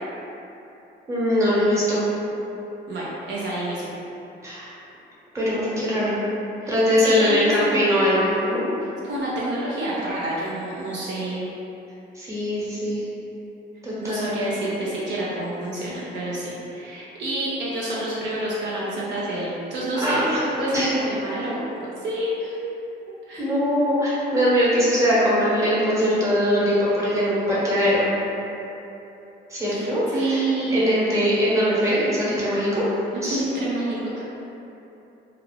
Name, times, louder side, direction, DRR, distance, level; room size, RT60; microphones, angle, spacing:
voice 1, 1.1-2.1 4.4-4.7 5.3-6.3 6.7-8.6 12.1-13.0 13.8-14.2 20.0-20.4 20.7-20.9 23.4-28.1 29.5-30.4 30.7-32.8 33.2-33.4, equal, 15° right, -8 dB, 1.0 m, -21 dB
voice 2, 2.9-3.9 6.6-7.9 9.0-11.4 14.0-22.6 23.3-23.5 29.6-30.9 33.1-34.2, right 1 dB, 65° right, -6 dB, 0.5 m, -28 dB
2.4 x 2.3 x 3.2 m, 3.0 s
cardioid pair, 90°, 20 cm